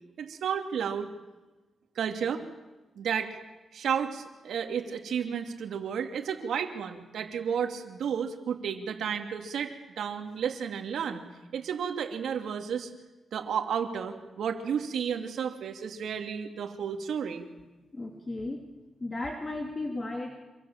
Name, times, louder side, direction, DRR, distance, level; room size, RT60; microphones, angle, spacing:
voice 1, 0.2-1.1 2.0-2.4 3.0-3.4 3.7-11.2 11.5-12.9 13.3-17.5, right 7 dB, 80° right, 5 dB, 2.9 m, -32 dB
voice 2, 17.9-18.6 19.0-20.4, left 2 dB, 25° left, 2 dB, 2.9 m, -35 dB
27.0 x 25.5 x 7.5 m, 1.1 s
cardioid pair, 115°, 0 cm